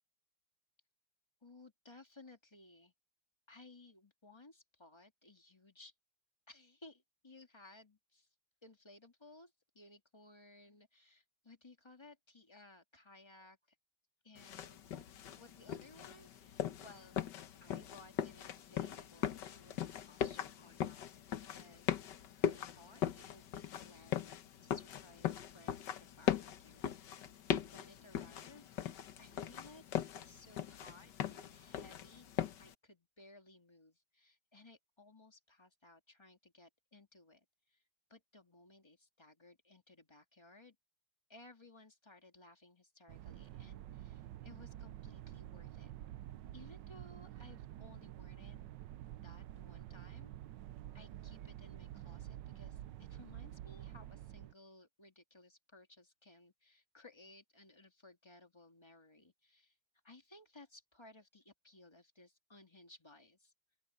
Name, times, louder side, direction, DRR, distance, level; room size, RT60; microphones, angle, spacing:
voice 1, 1.4-2.9 3.5-5.9 6.5-8.3 8.6-13.8 14.2-15.1 15.3-17.2 17.6-22.0 22.4-37.8 38.1-40.8 41.3-45.9 46.5-48.6 49.2-50.3 50.9-59.8 60.0-63.5, left 2 dB, 15° left, 2.2 m, -60 dB
sound 1, 14.4-32.7, left 10 dB, 65° left, 1.6 m, -40 dB
sound 2, 43.1-54.5, right 13 dB, 70° right, 1.2 m, -49 dB
open air
omnidirectional pair, 2.2 m